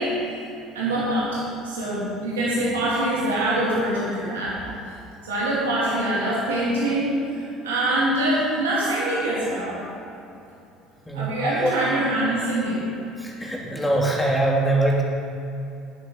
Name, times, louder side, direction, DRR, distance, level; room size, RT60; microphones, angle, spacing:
voice 1, 0.0-4.6 5.2-9.8 11.1-12.8, right 1 dB, 80° right, -7 dB, 3.1 m, -24 dB
voice 2, 11.1-11.7 13.2-15.0, right 1 dB, 10° left, -2 dB, 3.0 m, -23 dB
11.0 x 9.6 x 5.5 m, 2.8 s
hypercardioid pair, 65°, 0 cm